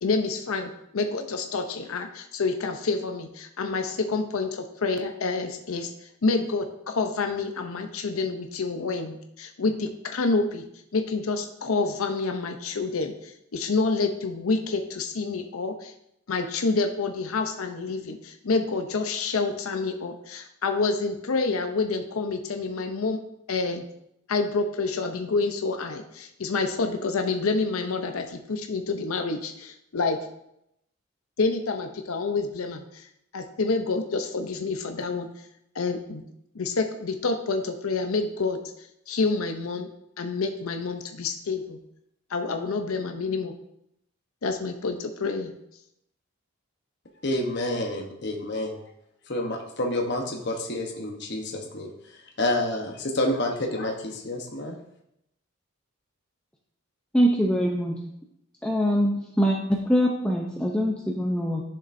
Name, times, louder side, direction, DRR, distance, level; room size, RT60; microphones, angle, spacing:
voice 1, 0.0-5.9 6.2-10.6 10.9-15.9 16.3-23.2 23.5-23.8 24.3-30.2 31.4-33.1 33.3-35.3 35.7-36.2 36.5-38.6 39.1-39.9 40.2-41.8 42.3-43.5 44.4-45.5, left 3 dB, 85° left, 5 dB, 0.6 m, -28 dB
voice 2, 47.2-48.8 49.3-51.9 52.4-54.8, left 1 dB, 55° left, 1 dB, 1.0 m, -28 dB
voice 3, 57.1-58.0 58.6-61.6, equal, 5° left, -1 dB, 0.6 m, -23 dB
10.5 x 6.8 x 2.6 m, 0.79 s
head